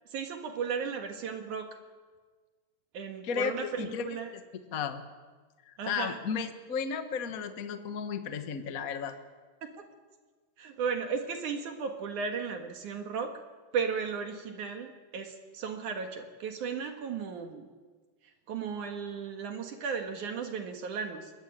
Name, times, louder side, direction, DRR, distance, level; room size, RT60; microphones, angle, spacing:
voice 1, 0.1-1.7 2.9-4.3 5.8-6.2 9.6-9.9 10.6-13.4 13.7-17.7 18.5-21.3, right 6 dB, 60° right, 5 dB, 2.8 m, -35 dB
voice 2, 3.2-4.1 4.7-5.0 5.7-9.1, left 6 dB, 85° left, 8 dB, 0.7 m, -34 dB
22.0 x 21.5 x 9.2 m, 1.4 s
omnidirectional pair, 4.2 m